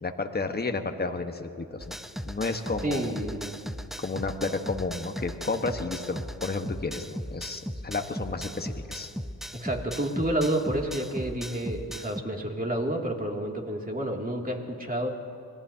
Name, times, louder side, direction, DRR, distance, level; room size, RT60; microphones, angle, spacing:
voice 1, 0.0-2.0 2.2-3.1 4.0-9.1, left 3 dB, 25° left, 6 dB, 1.4 m, -32 dB
sound 1, 1.8-12.2, equal, ahead, 0.6 m, -38 dB
voice 2, 2.8-3.6 9.6-15.1, right 1 dB, 20° right, 0 dB, 2.7 m, -29 dB
25.5 x 18.0 x 2.9 m, 2.7 s
supercardioid pair, 50°, 40 cm